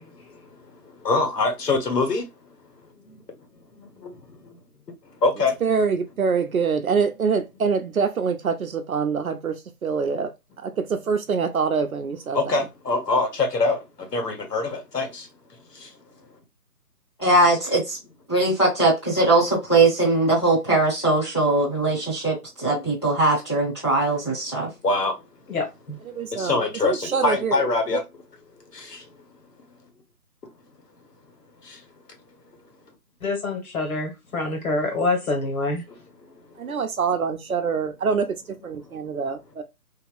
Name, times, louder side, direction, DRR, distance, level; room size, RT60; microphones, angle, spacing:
voice 1, 0.0-3.2 3.7-4.6 4.9-5.6 12.3-16.2 22.7-22.9 24.8-25.4 26.2-28.0 28.6-29.4 31.6-31.8 35.1-35.5 35.9-36.8 38.8-39.2, left 3 dB, 85° left, 1.4 m, -27 dB
voice 2, 5.6-10.3 10.6-12.7 26.0-27.7 36.6-38.3 38.6-39.6, right 5 dB, 60° right, 0.8 m, -25 dB
voice 3, 17.2-18.0 18.3-24.7, right 2 dB, 20° left, 0.9 m, -20 dB
voice 4, 25.5-26.0 33.2-35.8, left 3 dB, 60° left, 1.6 m, -26 dB
2.9 x 2.9 x 2.3 m
hypercardioid pair, 170°, 47 cm